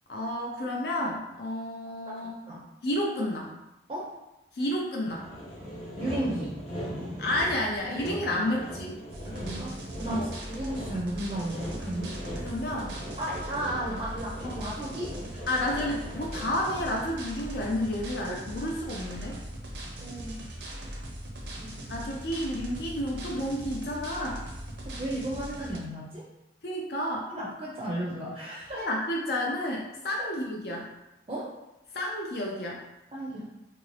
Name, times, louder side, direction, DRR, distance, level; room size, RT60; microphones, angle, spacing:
voice 1, 0.1-2.4 2.8-3.5 4.5-5.3 7.2-9.0 10.1-10.3 12.4-12.9 14.4-14.5 15.5-19.4 21.9-24.4 26.6-27.3 28.7-30.9 31.9-32.8, left 1 dB, 60° left, -1 dB, 0.4 m, -31 dB
Sawing, 5.1-17.1, equal, 35° left, 0.7 m, -40 dB
voice 2, 6.0-6.6 9.3-12.1 13.2-15.1 20.0-20.3 21.6-21.7 24.8-26.3 27.3-28.8 30.2-30.3 31.3-31.5 33.1-33.5, right 1 dB, 30° right, -5 dB, 0.4 m, -34 dB
sound 1, 9.1-25.8, right 1 dB, 75° right, 0.6 m, -40 dB
2.8 x 2.5 x 3.2 m, 0.96 s
head